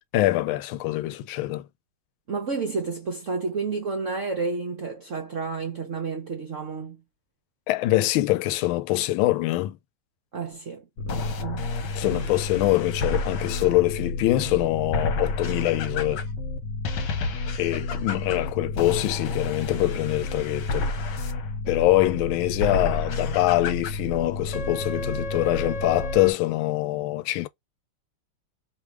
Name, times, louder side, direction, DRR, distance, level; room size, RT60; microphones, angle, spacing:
voice 1, 0.1-1.6 7.7-9.8 11.9-16.2 17.6-20.9 21.7-27.5, left 17 dB, 80° left, 1.3 m, -24 dB
voice 2, 2.3-7.0 10.3-12.3, right 4 dB, 50° right, 1.0 m, -31 dB
sound 1, 11.0-26.3, left 3 dB, 65° left, 1.4 m, -30 dB
3.4 x 3.2 x 4.6 m
omnidirectional pair, 2.3 m